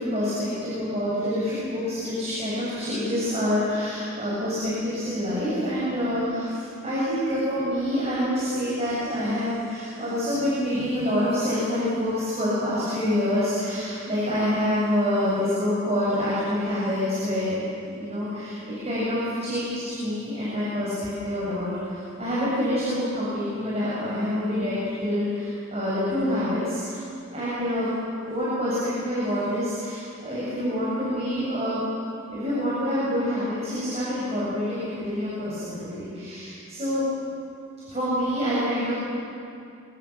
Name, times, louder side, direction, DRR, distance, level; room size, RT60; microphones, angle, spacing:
voice 1, 0.0-17.6 17.9-27.0 27.3-27.9 28.3-31.8 32.3-37.0 37.9-38.9, left 1 dB, 30° right, -8 dB, 7.3 m, -27 dB
25.0 x 22.5 x 7.7 m, 2.5 s
head